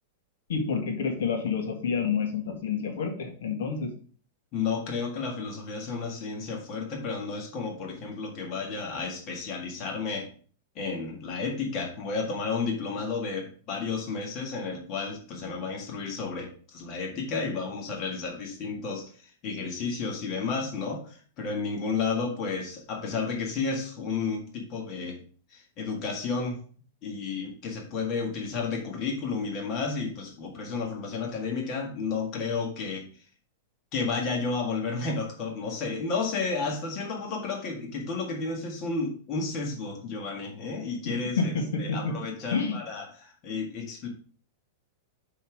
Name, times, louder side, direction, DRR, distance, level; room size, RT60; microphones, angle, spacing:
voice 1, 0.5-3.9 41.0-42.2 42.5-42.8, left 5 dB, 80° left, 4 dB, 1.7 m, -29 dB
voice 2, 4.5-10.3 10.7-25.2 25.5-26.6 27.0-33.1 33.9-41.5 41.8-44.1, left 4 dB, 30° left, 1 dB, 1.7 m, -32 dB
5.7 x 5.5 x 4.6 m, 0.43 s
supercardioid pair, 165°, 0 cm